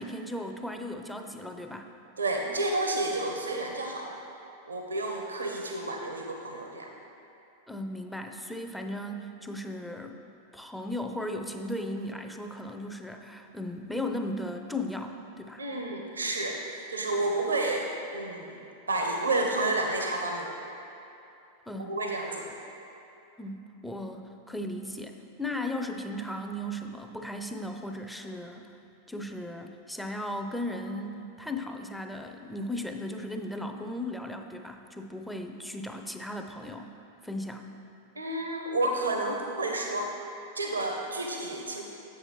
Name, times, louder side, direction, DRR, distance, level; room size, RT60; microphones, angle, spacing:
voice 1, 0.0-1.9 7.7-10.2 10.5-15.6 21.7-22.0 23.4-28.7 29.1-36.9 37.2-37.7, left 1 dB, ahead, 4 dB, 0.4 m, -36 dB
voice 2, 2.2-4.2 4.6-6.9 15.6-20.6 21.8-22.5 38.1-40.1 40.6-41.8, right 2 dB, 75° right, 2 dB, 0.6 m, -30 dB
7.7 x 7.4 x 3.1 m, 2.9 s
figure-of-eight pair, 90°, 0 cm